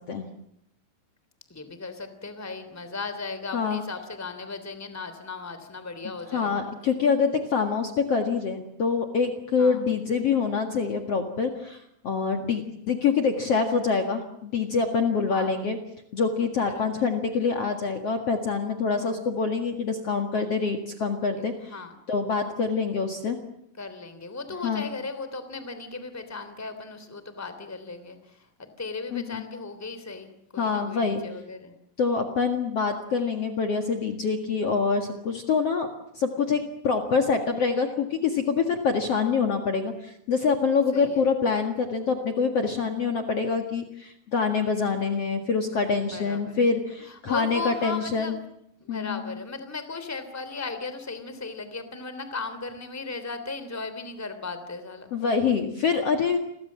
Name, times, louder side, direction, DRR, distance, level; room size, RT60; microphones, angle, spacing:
voice 1, 1.5-6.7 9.6-9.8 15.3-15.5 16.6-16.9 19.0-19.2 21.4-21.9 23.8-31.7 40.9-41.2 46.1-46.7 47.0-48.4 48.8-55.1, left 4 dB, 5° left, 10 dB, 2.6 m, -37 dB
voice 2, 6.3-15.8 16.1-21.7 22.1-23.4 24.6-24.8 29.1-29.4 30.6-31.2 32.0-35.9 36.1-48.3 48.9-49.2 55.1-56.4, left 5 dB, 45° left, 5 dB, 2.5 m, -25 dB
30.0 x 23.0 x 7.5 m, 0.76 s
omnidirectional pair, 4.3 m